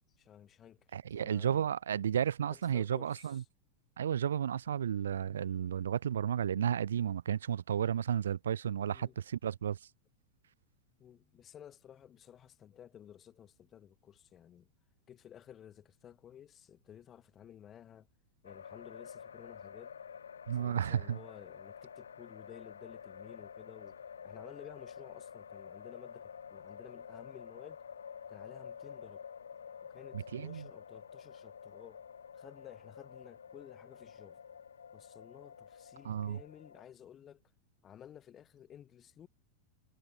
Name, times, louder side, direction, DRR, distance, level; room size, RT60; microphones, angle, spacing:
voice 1, 0.2-1.7 2.5-3.4 8.9-9.2 11.0-14.7 15.1-18.1 18.4-19.9 20.5-24.0 24.2-27.8 28.3-29.2 29.9-32.0 32.3-34.4 34.9-37.4 37.8-39.3, left 10 dB, 25° left, 2.0 m, -54 dB
voice 2, 0.9-3.4 4.0-9.8 20.5-21.2 30.1-30.7 36.0-36.4, right 9 dB, 65° right, 0.3 m, -33 dB
sound 1, 18.4-36.8, left 7 dB, 70° left, 0.4 m, -49 dB
figure-of-eight pair, 90°, 0 cm